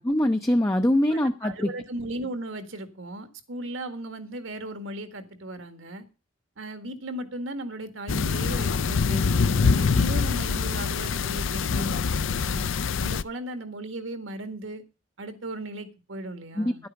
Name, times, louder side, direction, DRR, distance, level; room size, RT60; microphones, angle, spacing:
voice 1, 0.0-1.7 16.6-16.9, left 1 dB, 15° left, 0.5 m, -23 dB
voice 2, 1.1-6.1 6.6-12.7 13.0-14.8 15.2-16.8, right 1 dB, 75° right, 1.7 m, -37 dB
sound 1, 8.1-13.2, left 5 dB, 75° left, 0.5 m, -24 dB
11.5 x 8.6 x 5.8 m
head